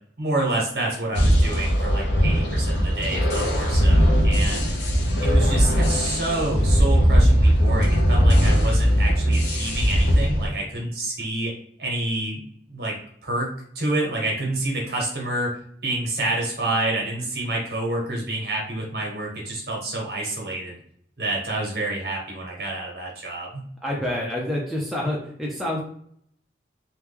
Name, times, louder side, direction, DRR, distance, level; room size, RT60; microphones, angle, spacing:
voice 1, 0.2-4.7 5.2-11.5 11.8-12.4 12.7-12.9 13.2-20.8 21.2-23.7, right 2 dB, 55° right, -2 dB, 1.1 m, -28 dB
sound 1, 1.1-10.5, equal, 80° left, 0.7 m, -19 dB
voice 2, 23.8-25.8, left 1 dB, ahead, -4 dB, 0.5 m, -27 dB
3.0 x 2.2 x 3.4 m, 0.63 s
head